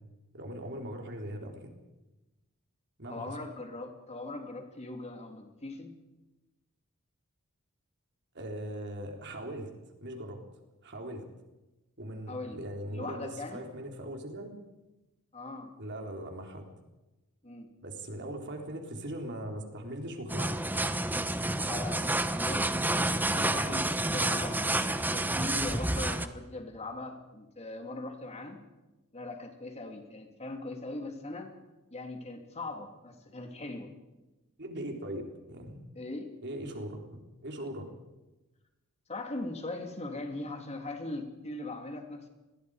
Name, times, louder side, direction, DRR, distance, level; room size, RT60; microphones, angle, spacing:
voice 1, 0.3-1.7 3.0-3.4 8.3-9.7 10.0-10.4 10.8-11.3 12.0-14.5 15.8-16.7 17.8-20.6 23.3-23.7 34.6-35.8 36.4-37.9, right 1 dB, 55° right, 2 dB, 4.1 m, -40 dB
voice 2, 3.1-6.0 12.3-12.6 12.9-13.6 15.3-15.7 17.4-17.7 21.6-24.6 24.9-28.6 29.1-31.5 31.9-33.9 35.9-36.3 39.1-42.3, left 2 dB, 30° left, 4 dB, 2.9 m, -40 dB
sound 1, 20.3-26.3, right 1 dB, 10° right, 1.0 m, -29 dB
28.0 x 21.5 x 5.1 m, 1.0 s
head